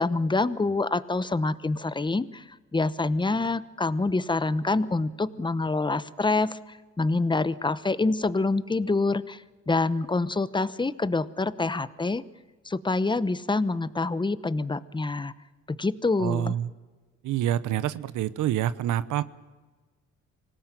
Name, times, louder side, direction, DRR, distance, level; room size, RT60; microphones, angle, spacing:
voice 1, 0.0-2.4 2.7-12.2 12.6-15.3 15.7-16.5, left 3 dB, 15° left, 16 dB, 1.0 m, -26 dB
voice 2, 16.2-16.7 17.2-19.2, right 11 dB, 80° right, 16 dB, 0.9 m, -27 dB
25.5 x 17.5 x 9.1 m, 1.3 s
cardioid pair, 90°, 30 cm